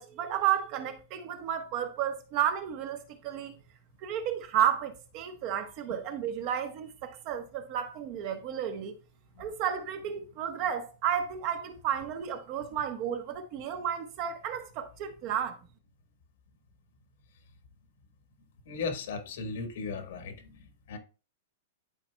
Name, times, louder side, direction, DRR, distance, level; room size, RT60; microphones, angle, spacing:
voice 1, 0.0-3.5 4.0-8.9 9.4-15.6, right 9 dB, 35° right, 0.9 m, -32 dB
voice 2, 18.6-21.0, left 4 dB, 65° left, 1.3 m, -37 dB
11.5 x 4.2 x 2.2 m
supercardioid pair, 165°, 0 cm